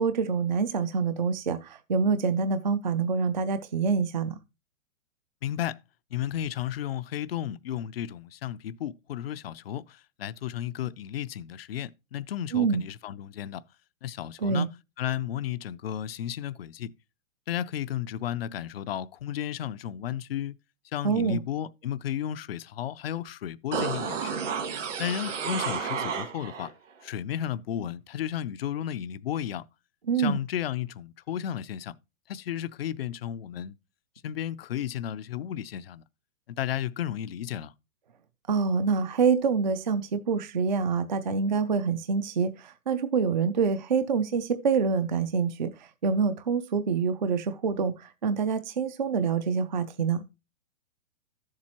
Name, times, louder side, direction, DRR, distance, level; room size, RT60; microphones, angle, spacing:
voice 1, 0.0-4.4 12.5-12.8 14.4-14.7 21.0-21.4 30.1-30.4 38.5-50.2, right 5 dB, 35° right, 0.4 m, -26 dB
voice 2, 5.4-5.8 6.1-13.6 14.0-14.7 15.0-16.9 17.5-20.6 20.9-24.4 25.0-26.7 27.0-29.6 30.2-32.0 32.3-33.8 34.2-36.0 36.5-37.7, left 10 dB, 50° left, 0.4 m, -33 dB
sound 1, 23.7-26.7 27.0-27.1, right 6 dB, 65° right, 2.1 m, -31 dB
13.0 x 7.4 x 2.9 m
hypercardioid pair, 170°, 40 cm